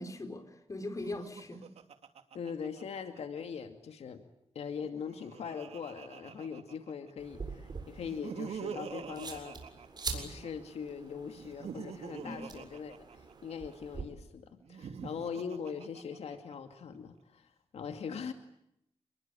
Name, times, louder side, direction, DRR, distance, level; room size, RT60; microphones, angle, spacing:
voice 1, 0.0-1.7 12.2-12.5 18.1-18.2, left 2 dB, 30° left, 7 dB, 5.0 m, -41 dB
Laughter, 0.9-3.4 4.7-7.1 8.0-10.5 11.3-13.8 14.6-16.5, right 6 dB, 85° right, 2.8 m, -45 dB
voice 2, 2.3-4.2 4.5-9.6 10.1-18.3, left 6 dB, 80° left, 7 dB, 2.4 m, -41 dB
sound 1, 7.2-14.0, right 4 dB, 40° right, 7.4 m, -44 dB
29.0 x 21.5 x 8.7 m, 0.78 s
wide cardioid pair, 115°, 10 cm